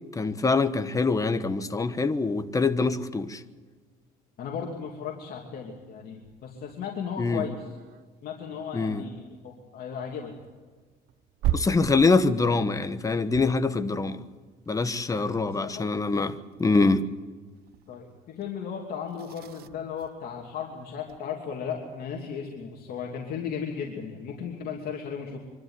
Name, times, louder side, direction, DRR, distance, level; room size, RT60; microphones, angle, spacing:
voice 1, 0.1-3.4 7.2-7.4 8.7-9.0 11.5-14.2 14.7-16.3 16.6-17.0, left 3 dB, 20° left, 1.1 m, -24 dB
voice 2, 4.4-7.8 8.2-10.3 15.1-15.8 17.9-25.4, left 7 dB, 65° left, 2.8 m, -36 dB
sound 1, 6.2-21.3 22.6-22.7 23.0-23.1 23.3-24.0, right 11 dB, 65° right, 0.8 m, -40 dB
24.5 x 12.5 x 9.6 m
cardioid pair, 110°, 17 cm